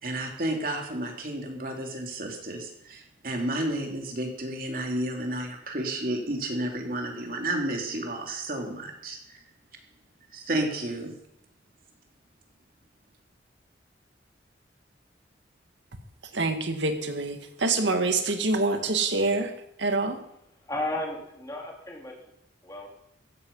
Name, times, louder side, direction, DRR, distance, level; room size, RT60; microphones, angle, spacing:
voice 1, 0.0-9.4 10.3-11.1, right 1 dB, 50° right, 3.3 m, -31 dB
voice 2, 16.3-19.5 19.8-20.2, right 3 dB, 85° right, 2.0 m, -26 dB
voice 3, 20.6-22.1 22.6-22.9, left 1 dB, 20° left, 3.7 m, -33 dB
15.5 x 14.5 x 5.6 m
head